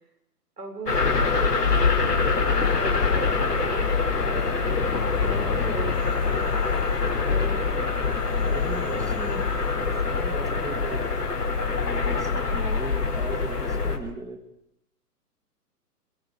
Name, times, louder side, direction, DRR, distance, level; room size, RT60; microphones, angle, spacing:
voice 1, 0.6-7.7, right 3 dB, 70° right, 4 dB, 7.3 m, -38 dB
sound 1, 0.9-14.0, left 4 dB, 75° left, 4.5 m, -24 dB
sound 2, 5.1-7.1 8.1-9.6, left 10 dB, 35° left, 2.0 m, -40 dB
voice 2, 8.4-9.5 9.7-11.1 11.8-14.4, right 3 dB, 5° right, 6 dB, 2.5 m, -37 dB
29.0 x 22.0 x 5.8 m, 0.75 s
figure-of-eight pair, 125°, 48 cm